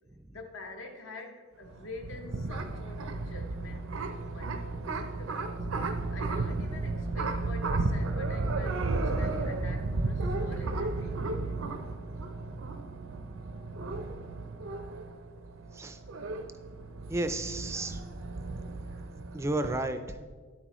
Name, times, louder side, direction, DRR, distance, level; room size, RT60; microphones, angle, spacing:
voice 1, 0.3-5.7 6.1-11.6, left 2 dB, 70° left, 4 dB, 1.0 m, -46 dB
sound 1, 1.6-19.8, right 3 dB, 85° right, 0.6 m, -34 dB
voice 2, 17.1-18.0 19.3-20.3, right 2 dB, 15° right, 8 dB, 0.4 m, -32 dB
10.5 x 7.4 x 3.0 m, 1.5 s
head